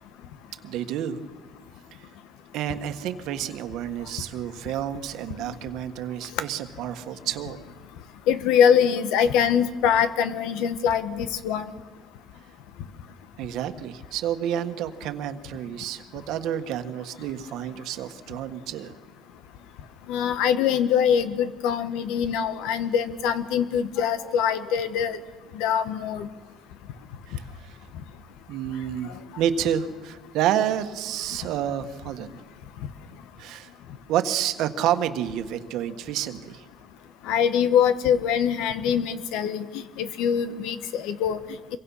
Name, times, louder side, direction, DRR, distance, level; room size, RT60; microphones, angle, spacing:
voice 1, 0.6-1.2 2.5-7.6 13.4-18.9 27.3-27.8 28.5-32.4 33.4-33.7 34.1-36.6, right 10 dB, 65° right, 9 dB, 1.5 m, -29 dB
voice 2, 8.3-11.7 20.1-25.2 25.5-26.3 37.2-41.4, left 8 dB, 80° left, 12 dB, 1.5 m, -23 dB
26.5 x 23.0 x 5.7 m, 1.5 s
cardioid pair, 150°, 0 cm